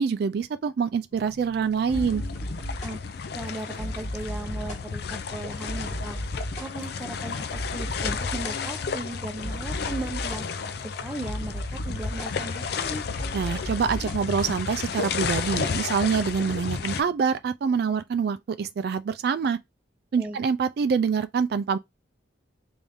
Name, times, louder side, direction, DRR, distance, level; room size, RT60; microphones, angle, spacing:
voice 1, 0.0-2.2 13.3-19.6 20.1-21.8, right 6 dB, 55° right, 0.3 m, -25 dB
sound 1, 1.1-17.4, equal, 40° left, 1.3 m, -38 dB
sound 2, 1.9-17.0, left 5 dB, 55° left, 0.4 m, -32 dB
voice 2, 3.3-6.2 6.6-10.5 10.8-13.0 20.2-20.4, right 1 dB, 5° right, 0.6 m, -37 dB
3.5 x 2.6 x 3.4 m
head